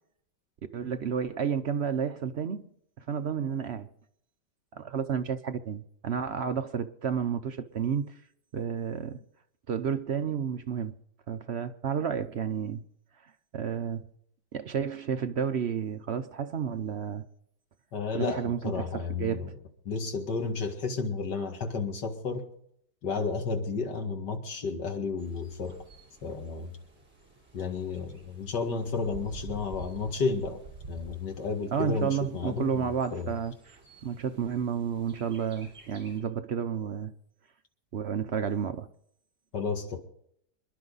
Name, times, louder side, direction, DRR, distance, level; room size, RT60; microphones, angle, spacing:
voice 1, 0.7-2.7 3.1-3.9 4.7-8.2 8.5-9.2 9.7-10.9 11.3-12.8 13.5-14.1 14.5-17.2 18.1-19.5 31.7-37.1 37.9-38.9, right 7 dB, 55° right, 0.7 m, -31 dB
voice 2, 17.9-19.5 19.9-22.5 23.0-25.8 26.2-26.7 27.5-30.6 30.9-33.3 39.5-40.0, left 4 dB, 75° left, 2.5 m, -32 dB
Bird, 25.2-36.2, right 3 dB, 35° right, 3.7 m, -49 dB
26.5 x 11.0 x 4.0 m
omnidirectional pair, 1.8 m